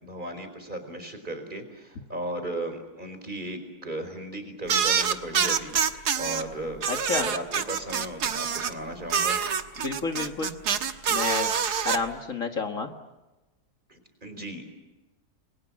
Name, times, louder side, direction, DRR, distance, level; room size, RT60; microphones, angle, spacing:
voice 1, 0.0-5.7 6.2-9.4 13.9-14.6, right 1 dB, 30° right, 7 dB, 4.6 m, -36 dB
sound 1, 4.7-6.4 6.8-8.7 9.1-12.0, right 7 dB, 80° right, 1.9 m, -26 dB
voice 2, 6.9-7.3 9.8-10.6 11.1-11.5 11.8-12.9, left 4 dB, 55° left, 5 dB, 2.1 m, -30 dB
30.0 x 23.0 x 7.4 m, 1.1 s
omnidirectional pair, 1.7 m